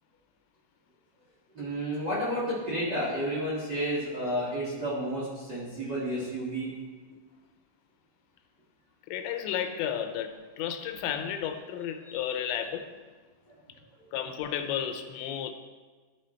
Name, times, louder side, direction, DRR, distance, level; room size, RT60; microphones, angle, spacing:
voice 1, 1.5-6.7 12.0-12.3, equal, 50° right, -7 dB, 1.2 m, -31 dB
voice 2, 9.1-12.9 14.1-15.5, left 9 dB, 80° left, 7 dB, 2.9 m, -33 dB
13.0 x 5.9 x 4.4 m, 1.4 s
omnidirectional pair, 5.3 m